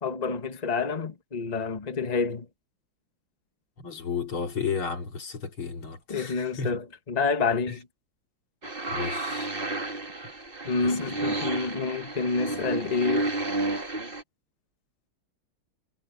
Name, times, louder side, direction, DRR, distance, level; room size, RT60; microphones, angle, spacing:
voice 1, 0.0-2.5 6.1-7.9 10.6-13.3, left 4 dB, 20° left, 1.6 m, -28 dB
voice 2, 3.8-6.7 8.9-9.5 10.8-11.0, left 6 dB, 80° left, 4.0 m, -33 dB
sound 1, 8.6-14.2, right 2 dB, 25° right, 2.6 m, -31 dB
omnidirectional pair, 2.3 m